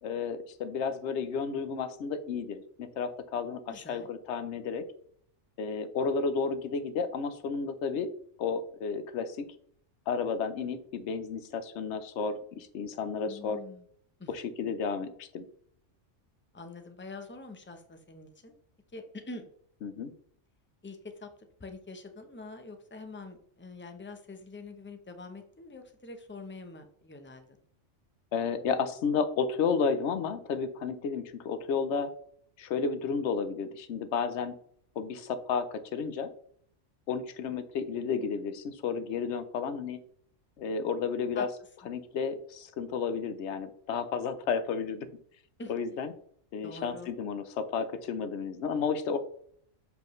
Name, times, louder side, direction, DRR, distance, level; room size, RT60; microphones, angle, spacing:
voice 1, 0.0-4.8 5.6-8.1 8.4-9.5 10.1-13.6 14.3-15.4 19.8-20.1 28.3-32.1 32.6-34.5 35.0-36.3 37.1-40.0 40.6-41.5 41.9-45.1 45.7-46.1 46.5-49.2, left 5 dB, 70° left, 11 dB, 1.0 m, -32 dB
voice 2, 3.7-4.1 13.3-13.8 14.2-14.3 16.5-18.5 18.9-19.5 20.8-21.3 21.6-27.6 41.3-41.5 45.6-45.7 46.6-47.1, left 3 dB, 15° left, 7 dB, 0.5 m, -45 dB
7.0 x 5.0 x 3.1 m, 0.63 s
omnidirectional pair, 1.3 m